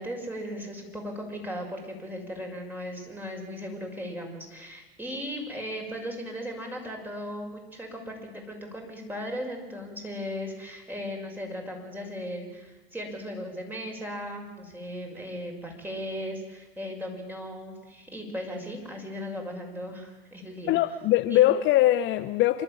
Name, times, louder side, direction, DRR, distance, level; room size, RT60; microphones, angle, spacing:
voice 1, 0.0-20.8 21.3-21.4, equal, 5° right, 6.1 m, -37 dB
voice 2, 20.7-22.6, left 14 dB, 40° left, 0.8 m, -22 dB
27.5 x 12.5 x 9.0 m
hypercardioid pair, 90°, 29 cm